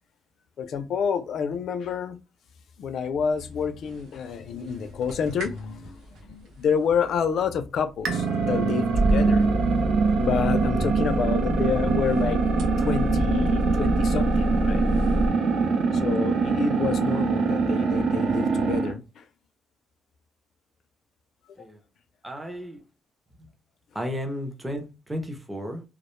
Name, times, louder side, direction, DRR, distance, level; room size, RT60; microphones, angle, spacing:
voice 1, 0.6-2.2 2.8-9.5 10.2-12.4 12.8-14.9 15.9-19.3 21.6-21.7, left 6 dB, 55° left, 0.3 m, -28 dB
sound 1, 3.6-4.2 4.5-15.3, equal, 85° right, 0.9 m, -28 dB
sound 2, 8.0-18.9, right 4 dB, 65° right, 0.6 m, -24 dB
voice 2, 22.2-22.8 23.4-23.5 23.9-25.8, equal, 10° right, 0.4 m, -33 dB
2.3 x 2.0 x 3.0 m
cardioid pair, 175°, 0 cm